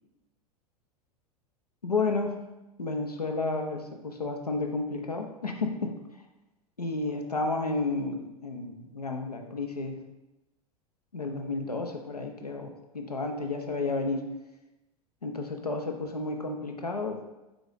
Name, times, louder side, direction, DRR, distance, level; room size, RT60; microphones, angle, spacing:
voice 1, 1.8-2.4 2.8-6.0 6.8-10.0 11.1-14.3 15.2-17.3, left 3 dB, 90° left, 4 dB, 0.6 m, -31 dB
3.9 x 3.5 x 3.8 m, 1.0 s
figure-of-eight pair, 85°, 19 cm